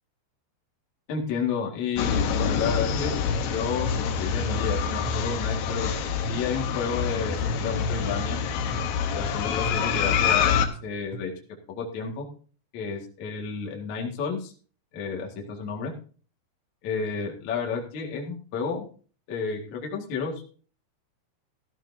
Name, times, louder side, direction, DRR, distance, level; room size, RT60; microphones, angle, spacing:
voice 1, 1.1-3.2 3.4-5.9 6.3-8.4 9.1-11.3 11.7-12.3 12.7-14.5 14.9-15.9 16.8-18.9 19.3-20.4, left 5 dB, 50° left, -1 dB, 2.6 m, -31 dB
sound 1, 2.0-10.7, left 7 dB, 75° left, 2.2 m, -26 dB
sound 2, 2.6-6.7 7.5-9.1 9.6-11.2, right 2 dB, 15° right, 0.8 m, -37 dB
15.0 x 14.0 x 2.8 m, 0.39 s
omnidirectional pair, 5.5 m